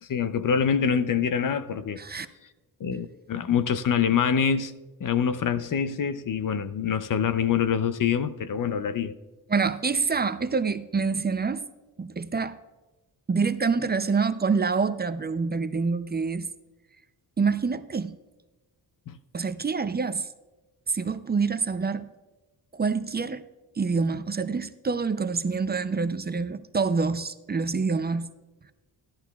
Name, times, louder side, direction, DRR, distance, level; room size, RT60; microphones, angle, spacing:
voice 1, 0.0-2.0 2.8-4.7 5.0-9.1 19.1-19.2, left 7 dB, 55° left, 0.6 m, -25 dB
voice 2, 9.5-11.6 12.0-12.6 13.3-16.5 17.4-18.2 19.3-20.3 20.9-22.1 22.7-23.4 23.8-28.3, right 4 dB, 25° right, 0.4 m, -26 dB
15.5 x 11.0 x 2.3 m
cardioid pair, 95°, 40 cm